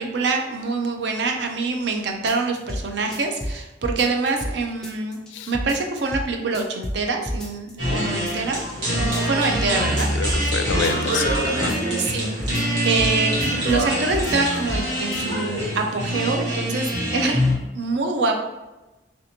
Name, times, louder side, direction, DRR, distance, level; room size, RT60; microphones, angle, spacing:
voice 1, 0.0-5.2 5.5-8.6 8.9-10.1 11.9-13.4 13.6-17.4 17.7-18.4, right 3 dB, 70° right, 3 dB, 0.5 m, -25 dB
sound 1, 2.3-2.8 3.1-4.5 4.8-5.3 5.5-6.3 6.5-7.0 7.3-8.0 8.3-8.7 9.0-9.7 10.0-11.4 11.7-12.2 12.4-13.1 13.4-13.9 14.1-14.8 15.1-15.2, equal, 5° left, 0.4 m, -30 dB
sound 2, 7.8-17.5, equal, 90° right, 1.2 m, -24 dB
voice 2, 10.1-11.8, left 6 dB, 85° left, 8 dB, 0.3 m, -28 dB
3.2 x 2.8 x 2.8 m, 1.0 s
head